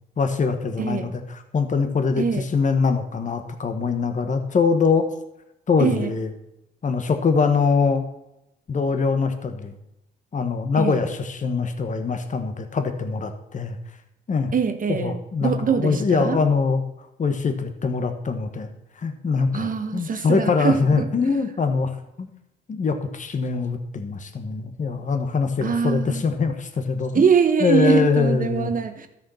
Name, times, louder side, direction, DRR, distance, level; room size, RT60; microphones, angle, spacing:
voice 1, 0.2-1.2 1.5-5.1 5.7-6.3 6.8-8.0 8.7-9.7 10.3-13.8 14.3-14.5 14.9-16.8 17.2-18.7 19.0-22.3 22.7-27.3 27.6-28.7, left 5 dB, 40° left, 7 dB, 1.5 m, -23 dB
voice 2, 0.8-1.1 2.2-2.5 5.8-6.1 10.8-11.0 14.5-16.4 19.5-21.4 25.6-26.3 27.1-29.1, right 6 dB, 45° right, 8 dB, 1.3 m, -23 dB
13.5 x 6.3 x 5.7 m, 0.85 s
cardioid pair, 90°, 20 cm